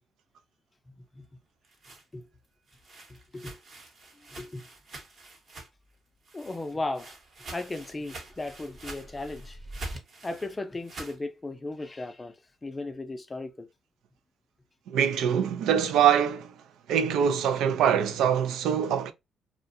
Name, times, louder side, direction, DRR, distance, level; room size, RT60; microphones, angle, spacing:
sound 1, 1.4-5.9 6.2-11.2, right 2 dB, 50° right, 1.0 m, -46 dB
voice 1, 4.3-4.7 6.3-7.2 7.5-9.6 10.2-12.4 12.6-13.7, left 2 dB, 20° left, 0.5 m, -36 dB
sound 2, 7.2-10.0, equal, 20° right, 0.8 m, -45 dB
voice 2, 14.9-16.5 16.9-19.1, right 8 dB, 85° right, 0.3 m, -24 dB
2.4 x 2.2 x 2.6 m
cardioid pair, 90°, 0 cm